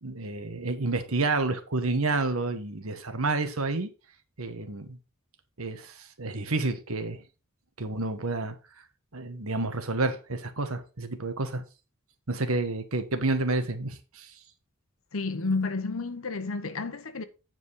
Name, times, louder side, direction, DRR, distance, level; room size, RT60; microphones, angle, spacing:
voice 1, 0.0-3.9 4.4-5.0 5.6-7.2 7.8-8.5 9.1-11.6 12.3-14.3, right 3 dB, 85° right, 1.5 m, -29 dB
voice 2, 15.1-17.2, left 3 dB, 75° left, 1.0 m, -31 dB
9.3 x 5.2 x 4.8 m
head